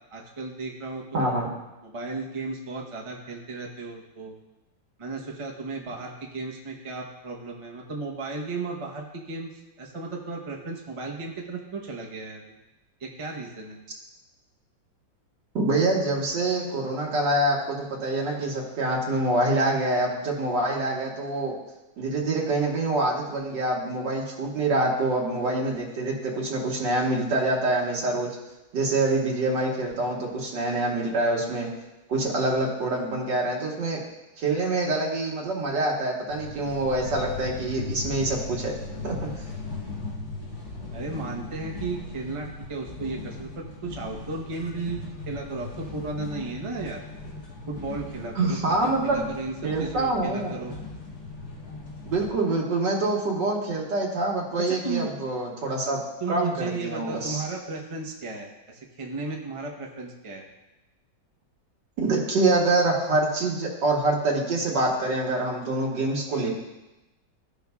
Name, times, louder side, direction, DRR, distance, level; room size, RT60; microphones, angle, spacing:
voice 1, 0.1-1.5 1.8-4.3 5.0-9.5 9.8-12.6 13.0-13.8 40.9-45.0 45.3-47.0 47.7-48.6 48.8-50.8 54.6-55.1 56.2-60.4 66.3-66.5, right 3 dB, 25° right, -1 dB, 0.7 m, -34 dB
voice 2, 1.1-1.5 15.5-21.5 22.0-28.3 28.7-31.7 32.1-34.0 34.4-38.8 39.0-39.4 48.4-49.3 49.6-50.6 52.1-56.0 56.3-57.4 62.0-66.5, right 2 dB, 75° right, -2 dB, 2.1 m, -25 dB
sound 1, 36.3-52.3, left 3 dB, 60° left, 1.8 m, -38 dB
15.0 x 5.4 x 2.3 m, 1.0 s
omnidirectional pair, 2.0 m